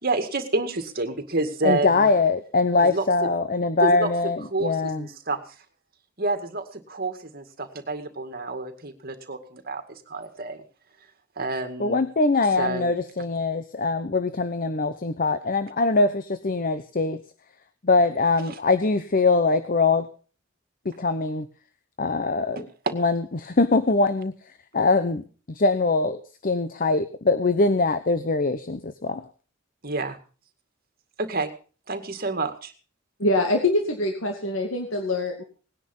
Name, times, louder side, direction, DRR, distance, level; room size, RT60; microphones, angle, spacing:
voice 1, 0.0-2.1 2.9-3.1 3.8-4.1 4.5-5.4 6.2-10.6 11.4-12.0 12.6-12.9 18.5-18.6 22.6-22.9 29.8-30.2 31.2-31.5 31.9-32.7, right 3 dB, 50° right, 8 dB, 2.2 m, -28 dB
voice 2, 1.6-5.1 11.8-17.2 17.8-20.1 20.8-21.5 22.0-22.7 22.9-24.3 24.7-29.3, left 3 dB, 45° left, 11 dB, 0.9 m, -23 dB
voice 3, 33.2-35.4, left 2 dB, 90° left, 3 dB, 2.4 m, -24 dB
19.0 x 10.0 x 5.5 m, 0.39 s
head